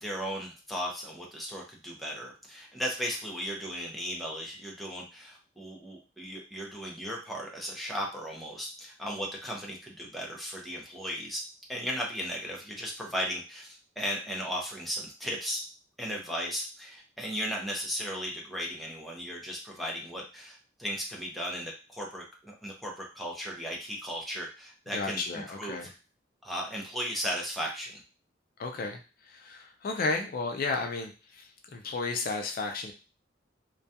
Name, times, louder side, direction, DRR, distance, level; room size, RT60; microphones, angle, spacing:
voice 1, 0.0-11.4 11.7-15.6 16.0-25.2 25.5-25.9 26.4-28.0, equal, ahead, -2 dB, 0.5 m, -36 dB
voice 2, 24.9-25.9 28.6-32.9, left 3 dB, 50° left, 3 dB, 0.3 m, -33 dB
2.3 x 2.2 x 2.7 m, 0.32 s
head